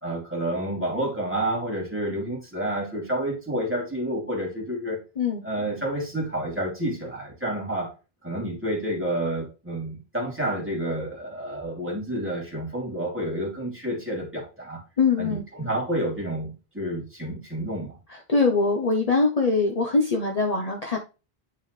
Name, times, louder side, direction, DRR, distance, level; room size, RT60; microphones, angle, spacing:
voice 1, 0.0-5.0 5.4-7.9 8.2-14.8 15.2-18.0, right 1 dB, 10° right, -3 dB, 2.9 m, -29 dB
voice 2, 15.0-15.4 18.3-21.0, left 4 dB, 40° left, 1 dB, 1.0 m, -22 dB
9.5 x 5.5 x 3.3 m, 0.31 s
omnidirectional pair, 1.1 m